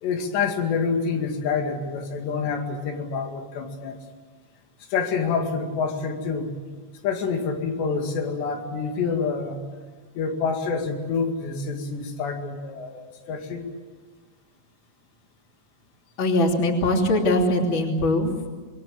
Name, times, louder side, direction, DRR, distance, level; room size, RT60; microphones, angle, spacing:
voice 1, 0.0-4.0 4.9-6.6 7.0-9.6 10.2-13.7, left 5 dB, 90° left, 3 dB, 4.6 m, -27 dB
voice 2, 16.2-18.5, left 1 dB, 30° left, 2 dB, 3.3 m, -21 dB
26.5 x 22.5 x 7.8 m, 1.5 s
omnidirectional pair, 4.8 m